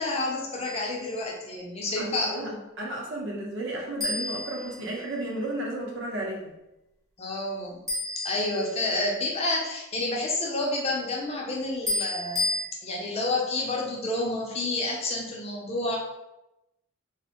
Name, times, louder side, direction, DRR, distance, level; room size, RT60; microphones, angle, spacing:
voice 1, 0.0-2.6 7.2-7.8 8.2-12.5 12.8-16.0, left 2 dB, 30° left, -1 dB, 0.5 m, -29 dB
sound 1, 0.6-1.0 4.0-5.4 7.9-9.2 11.9-12.6, left 2 dB, 15° right, 0.7 m, -31 dB
voice 2, 2.0-2.5 2.8-6.5, right 1 dB, 60° right, -2 dB, 0.7 m, -33 dB
3.1 x 2.0 x 2.8 m, 0.93 s
head